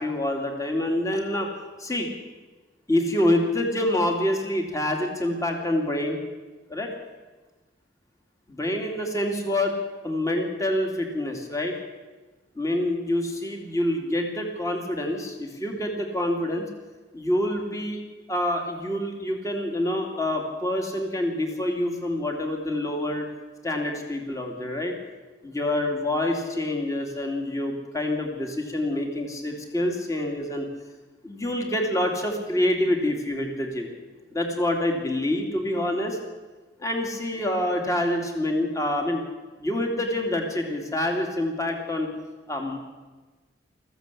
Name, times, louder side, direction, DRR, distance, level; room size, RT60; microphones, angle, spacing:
voice 1, 0.0-1.5 1.8-2.1 2.9-6.2 6.7-6.9 8.5-9.8 10.0-11.7 12.6-16.6 17.1-18.0 18.3-23.3 23.6-24.9 25.4-30.7 31.2-33.9 34.3-36.2 36.8-39.2 39.6-42.1 42.5-42.8, left 1 dB, 20° left, 2 dB, 2.6 m, -26 dB
20.5 x 15.0 x 8.4 m, 1.3 s
head